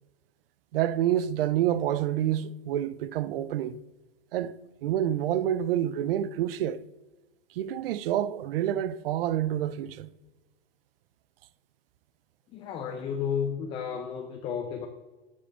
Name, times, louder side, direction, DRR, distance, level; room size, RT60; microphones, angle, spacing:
voice 1, 0.7-3.8 4.3-4.5 4.8-6.8 7.6-10.1, right 11 dB, 60° right, 0.5 m, -28 dB
voice 2, 12.5-14.9, left 7 dB, 15° left, 0.3 m, -32 dB
8.1 x 5.2 x 3.4 m
hypercardioid pair, 125°, 33 cm